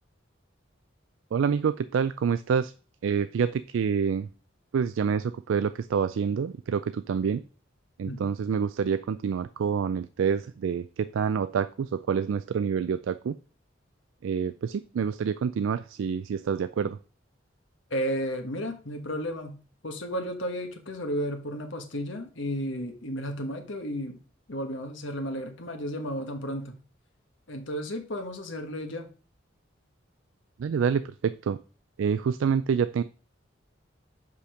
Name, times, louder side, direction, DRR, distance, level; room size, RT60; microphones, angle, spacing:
voice 1, 1.3-2.7 3.0-4.3 4.7-7.4 8.0-13.4 14.2-17.0 30.6-31.6 32.0-33.0, right 6 dB, 85° right, 0.3 m, -27 dB
voice 2, 17.9-19.6 19.8-24.2 24.5-26.8 27.5-29.1, equal, 75° left, 1.4 m, -33 dB
5.5 x 5.1 x 6.3 m
head